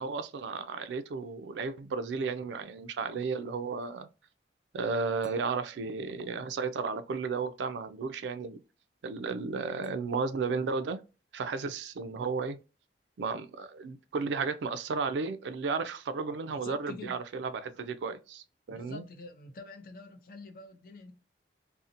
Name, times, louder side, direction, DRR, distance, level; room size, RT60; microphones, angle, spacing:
voice 1, 0.0-4.1 4.7-8.6 9.0-11.0 11.3-12.6 13.2-19.0, right 4 dB, 90° right, 0.4 m, -33 dB
sound 1, 3.8-3.9 5.2-7.3 9.8-10.3 11.4-11.5, right 6 dB, 15° right, 1.1 m, -60 dB
voice 2, 16.6-17.1 18.7-21.1, left 3 dB, 50° left, 0.6 m, -46 dB
2.7 x 2.1 x 2.5 m
head